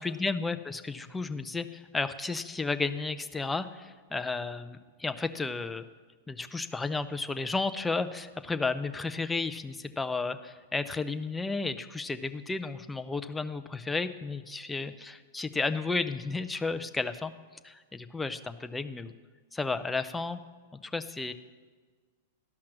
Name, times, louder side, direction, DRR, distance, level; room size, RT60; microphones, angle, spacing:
voice 1, 0.0-5.8 6.3-17.3 17.6-19.1 19.5-20.4 20.8-21.3, left 3 dB, 10° left, 10 dB, 0.5 m, -33 dB
12.0 x 5.8 x 6.3 m, 1.4 s
hypercardioid pair, 105°, 0 cm